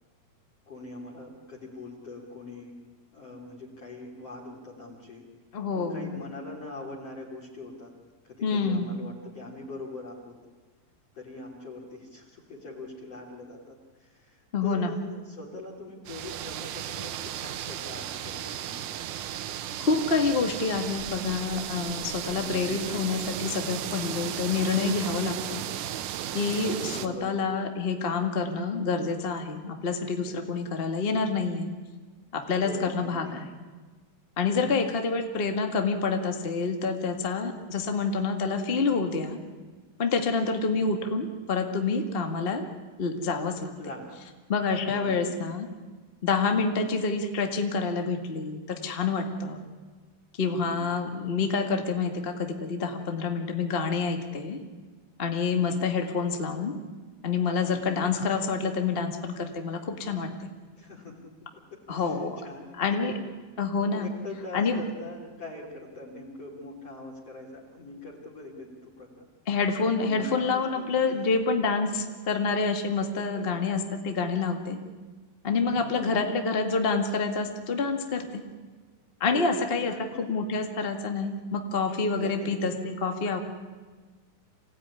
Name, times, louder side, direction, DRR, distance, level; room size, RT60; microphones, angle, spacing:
voice 1, 0.7-2.8 3.1-5.2 5.7-7.9 8.2-10.3 11.1-18.9 26.8-27.4 32.6-33.4 34.5-34.7 40.6-40.9 43.8-44.3 44.9-45.4 46.6-46.9 50.5-50.8 57.7-58.0 60.8-63.3 63.9-69.3 69.9-71.3 73.2-73.8 75.6-76.2 79.2-80.4 82.2-82.6, left 2 dB, 40° left, -1 dB, 3.9 m, -43 dB
voice 2, 5.5-6.2 8.4-8.9 14.5-15.0 19.8-25.6 26.3-31.7 32.3-33.5 34.4-39.4 40.0-42.6 43.0-43.7 44.5-45.7 46.2-49.7 50.4-54.6 55.2-56.7 57.2-60.5 61.9-62.4 62.8-63.1 63.6-64.1 64.5-64.8 69.5-74.8 75.4-78.4 79.2-83.4, left 4 dB, 90° left, 4 dB, 0.5 m, -27 dB
sound 1, 16.0-27.1, right 11 dB, 70° right, 2.0 m, -35 dB
26.5 x 17.0 x 9.8 m, 1.4 s
omnidirectional pair, 4.6 m